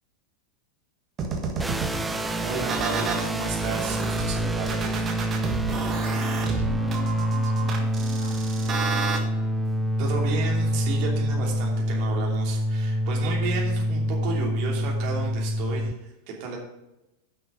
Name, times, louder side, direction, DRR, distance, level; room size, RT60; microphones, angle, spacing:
sound 1, 1.2-3.3 3.7-9.2, right 4 dB, 25° right, 1.6 m, -31 dB
sound 2, 1.6-15.9, equal, 10° right, 0.5 m, -26 dB
voice 1, 2.4-5.0 10.0-16.6, right 4 dB, 45° right, -1 dB, 2.8 m, -33 dB
voice 2, 5.9-9.1, left 5 dB, 70° left, 0 dB, 2.5 m, -43 dB
9.9 x 6.1 x 5.1 m, 0.92 s
figure-of-eight pair, 90°, 0 cm